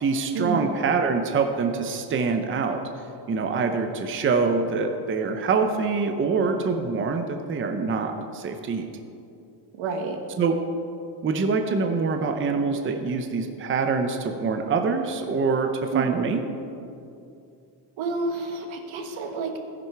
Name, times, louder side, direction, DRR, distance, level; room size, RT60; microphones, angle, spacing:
voice 1, 0.0-2.8 3.3-8.9 10.4-10.6 11.2-16.4, right 4 dB, 25° right, 5 dB, 0.7 m, -25 dB
voice 2, 9.8-10.2 15.9-16.3 18.0-19.6, right 4 dB, 85° right, 4 dB, 1.6 m, -29 dB
15.0 x 10.5 x 4.6 m, 2.6 s
cardioid pair, 165°, 45 cm